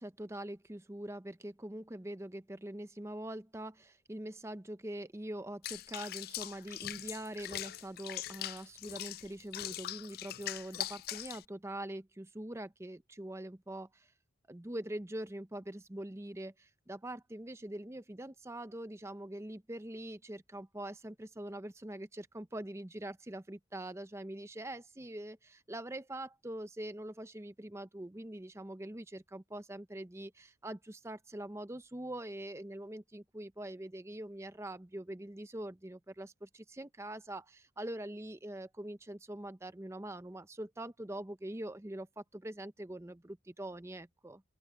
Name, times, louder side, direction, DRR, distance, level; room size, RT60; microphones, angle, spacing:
voice 1, 0.0-14.1 14.5-44.4, right 1 dB, 15° right, 0.6 m, -43 dB
Water / Bathtub (filling or washing), 5.6-11.4, left 13 dB, 50° left, 0.3 m, -42 dB
open air
head